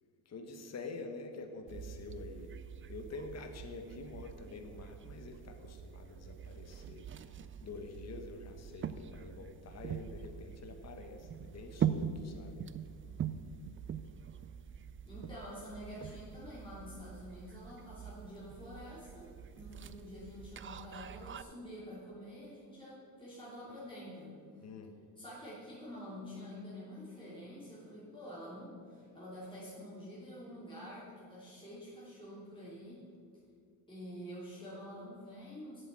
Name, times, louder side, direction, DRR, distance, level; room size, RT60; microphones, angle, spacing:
voice 1, 0.0-2.5 2.9-12.6 24.6-25.0, left 3 dB, 40° left, 4 dB, 1.1 m, -47 dB
sound 1, 1.7-21.4, right 8 dB, 30° right, 0.4 m, -43 dB
voice 2, 15.1-24.6 25.2-33.1 33.9-35.8, equal, 10° left, -9 dB, 3.2 m, -48 dB
7.9 x 7.9 x 7.4 m, 2.2 s
cardioid pair, 110°, 43 cm